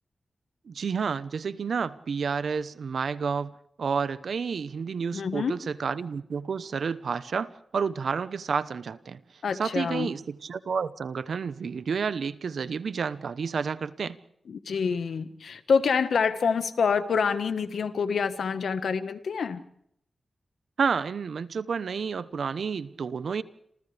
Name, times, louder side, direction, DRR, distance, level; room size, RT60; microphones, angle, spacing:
voice 1, 0.6-9.2 9.5-14.2 20.8-23.4, right 6 dB, 80° right, 1.0 m, -30 dB
voice 2, 5.1-5.5 9.4-10.1 14.5-19.6, left 6 dB, 90° left, 1.5 m, -27 dB
28.0 x 27.5 x 3.5 m
wide cardioid pair, 75°, 0 cm